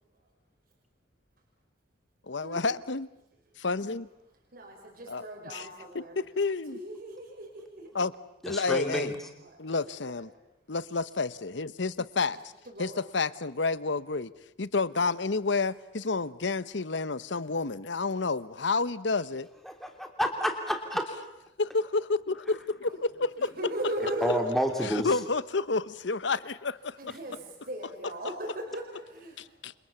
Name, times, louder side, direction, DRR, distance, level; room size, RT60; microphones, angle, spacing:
voice 1, 2.3-3.1 3.6-4.1 5.1-5.7 5.9-6.8 8.0-8.1 8.5-9.1 9.6-10.3 10.7-12.4 12.8-14.3 14.6-19.5 21.6-23.5 24.8-27.1 29.4-29.7, left 3 dB, 70° left, 16 dB, 1.0 m, -30 dB
voice 2, 4.5-6.2 6.7-7.9 9.4-10.3 12.7-13.0 22.8-24.4 27.0-29.8, right 1 dB, 50° right, -1 dB, 5.6 m, -38 dB
voice 3, 8.4-9.2 19.6-21.1 24.2-25.1, equal, ahead, 4 dB, 3.1 m, -29 dB
29.5 x 26.5 x 7.2 m, 0.85 s
head